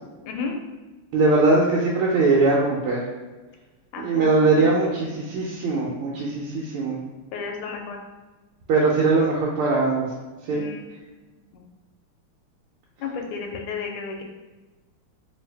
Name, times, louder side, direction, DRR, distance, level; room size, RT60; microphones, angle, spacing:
voice 1, 0.2-0.6 3.9-4.7 7.3-8.0 10.5-11.0 11.5-11.7 13.0-14.2, left 5 dB, 85° left, 2 dB, 1.5 m, -33 dB
voice 2, 1.1-3.0 4.0-7.0 8.7-10.1 10.5-10.6, right 3 dB, 85° right, -4 dB, 1.5 m, -21 dB
3.3 x 2.7 x 3.2 m, 1.2 s
omnidirectional pair, 2.4 m